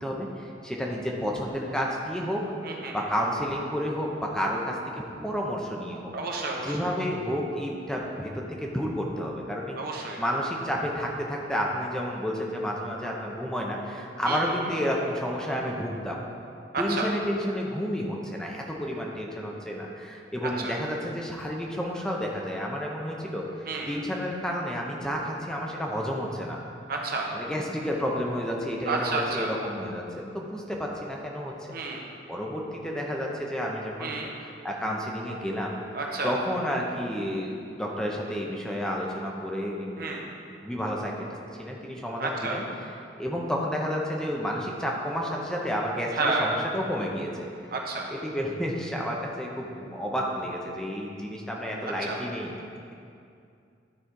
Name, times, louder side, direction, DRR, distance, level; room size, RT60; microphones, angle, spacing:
voice 1, 0.0-2.4 2.9-4.8 5.2-6.1 6.6-16.3 16.8-23.4 23.9-26.6 27.3-31.5 32.3-34.1 34.6-35.8 36.2-39.9 40.6-41.1 41.6-42.6 43.2-47.5 48.1-52.5, equal, 5° left, -2 dB, 0.7 m, -31 dB
voice 2, 2.6-3.1 6.1-6.9 9.8-10.2 14.2-14.5 16.7-17.1 20.6-20.8 23.7-23.9 26.9-27.3 28.8-29.5 31.7-32.0 34.0-34.3 35.9-36.4 40.0-40.3 42.2-42.6 46.1-46.5 47.7-48.1 51.8-52.2, right 3 dB, 55° right, 0 dB, 1.0 m, -30 dB
11.5 x 4.2 x 4.7 m, 2.4 s
head